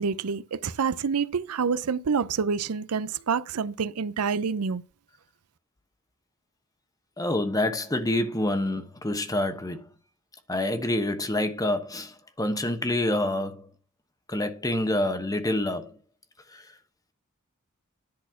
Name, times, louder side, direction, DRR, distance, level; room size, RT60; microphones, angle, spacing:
voice 1, 0.0-4.8, right 6 dB, 90° right, 0.6 m, -27 dB
voice 2, 7.2-9.9 10.5-13.7 14.3-15.9 16.5-16.6, left 1 dB, 15° left, 1.1 m, -27 dB
10.5 x 4.2 x 5.7 m
head